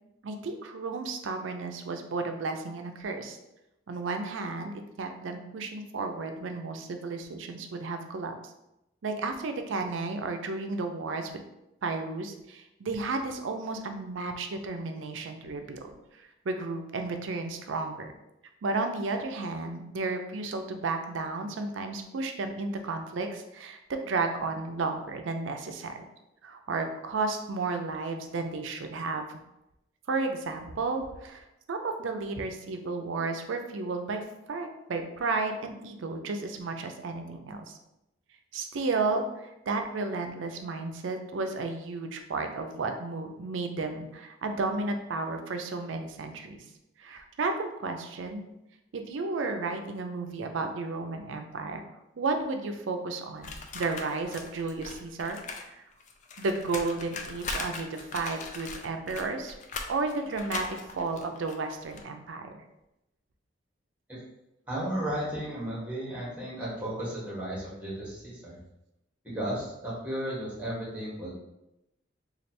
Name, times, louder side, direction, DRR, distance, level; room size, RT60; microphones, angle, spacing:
voice 1, 0.2-3.4 3.9-4.7 5.0-8.3 9.0-11.4 11.8-15.9 16.5-18.1 18.6-26.0 26.4-29.2 30.1-37.7 38.5-46.6 47.0-48.4 48.9-51.8 52.2-55.8 56.4-59.6 59.9-62.5, right 3 dB, 80° right, 5 dB, 0.5 m, -33 dB
sound 1, 53.4-55.7 55.9-62.0, left 4 dB, 40° left, 0.4 m, -40 dB
voice 2, 64.7-68.6 69.2-71.3, right 1 dB, 5° right, -7 dB, 1.3 m, -34 dB
3.2 x 2.4 x 4.2 m, 0.89 s
head